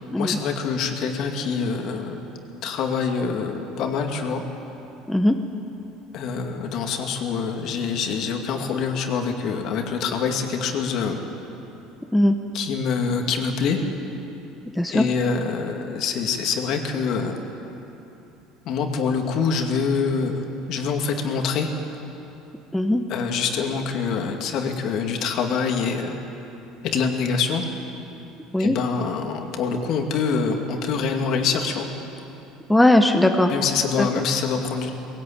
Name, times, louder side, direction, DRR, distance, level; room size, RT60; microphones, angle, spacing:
voice 1, 0.2-4.4 6.1-11.2 12.5-13.9 14.9-17.4 18.7-21.7 23.1-26.1 26.8-27.6 28.6-31.9 33.5-34.9, left 5 dB, 55° left, 4 dB, 2.3 m, -25 dB
voice 2, 14.8-15.1 22.7-23.0 28.5-28.8 32.7-33.5 34.0-34.1, left 1 dB, 5° left, 5 dB, 0.9 m, -18 dB
20.0 x 17.5 x 8.7 m, 3.0 s
cardioid pair, 135°, 0 cm